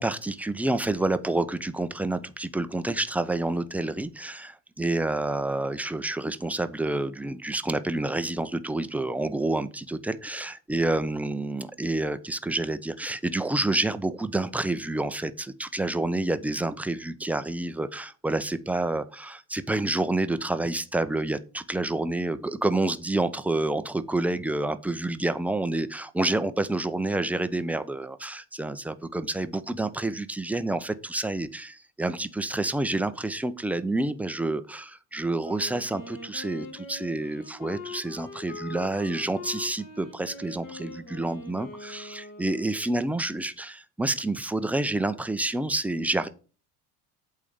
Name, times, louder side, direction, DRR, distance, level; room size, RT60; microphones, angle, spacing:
voice 1, 0.0-46.3, right 2 dB, 5° right, 11 dB, 0.5 m, -28 dB
Wind instrument woodwind instrument, 35.4-43.2, left 2 dB, 45° left, 2.1 m, -42 dB
8.3 x 3.8 x 6.7 m, 0.38 s
hypercardioid pair, 70°, 46 cm